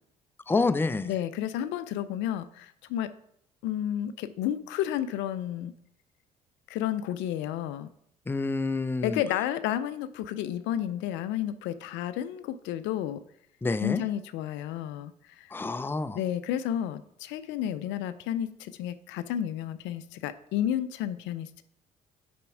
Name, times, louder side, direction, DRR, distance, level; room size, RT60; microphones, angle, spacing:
voice 1, 0.5-1.1 8.3-9.2 13.6-14.0 15.5-16.2, left 3 dB, 10° left, 12 dB, 0.5 m, -28 dB
voice 2, 1.1-3.1 3.6-5.7 6.7-7.9 9.0-13.2 13.8-15.5 16.1-21.6, left 11 dB, 65° left, 13 dB, 0.5 m, -31 dB
6.7 x 4.3 x 4.9 m, 0.73 s
hypercardioid pair, 60°, 20 cm